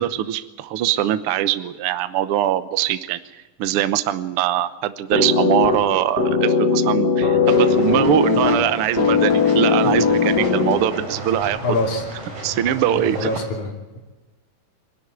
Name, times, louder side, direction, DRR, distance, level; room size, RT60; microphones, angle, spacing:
voice 1, 0.0-3.2 3.6-11.6 12.4-13.3, right 11 dB, 70° right, 12 dB, 1.3 m, -22 dB
sound 1, 5.1-11.1, left 5 dB, 35° left, 2.1 m, -19 dB
sound 2, 7.5-13.5, right 2 dB, 45° right, 5.7 m, -34 dB
voice 2, 11.6-12.0 13.0-14.0, left 2 dB, 60° left, 1 dB, 4.2 m, -25 dB
24.0 x 12.0 x 9.7 m, 1.2 s
omnidirectional pair, 3.8 m